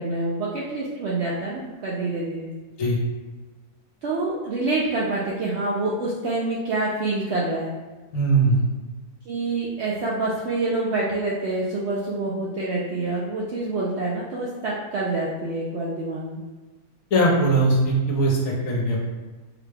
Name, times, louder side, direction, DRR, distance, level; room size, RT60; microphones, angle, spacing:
voice 1, 0.0-2.5 4.0-7.7 9.3-16.4, right 2 dB, 70° right, -5 dB, 0.6 m, -27 dB
voice 2, 8.1-8.6 17.1-19.0, right 2 dB, 65° left, -2 dB, 1.1 m, -20 dB
3.9 x 2.2 x 3.3 m, 1.3 s
omnidirectional pair, 1.6 m